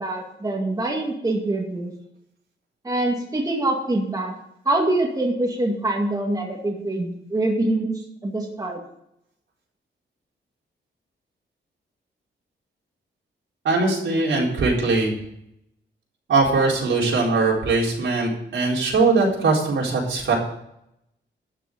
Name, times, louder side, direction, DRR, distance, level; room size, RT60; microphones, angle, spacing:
voice 1, 0.0-1.9 2.8-4.3 4.7-8.8, right 2 dB, 20° right, -1 dB, 2.1 m, -24 dB
voice 2, 13.6-15.2 16.3-20.4, right 3 dB, 80° right, -3 dB, 4.5 m, -21 dB
12.5 x 6.5 x 7.8 m, 0.78 s
wide cardioid pair, 150°, 20 cm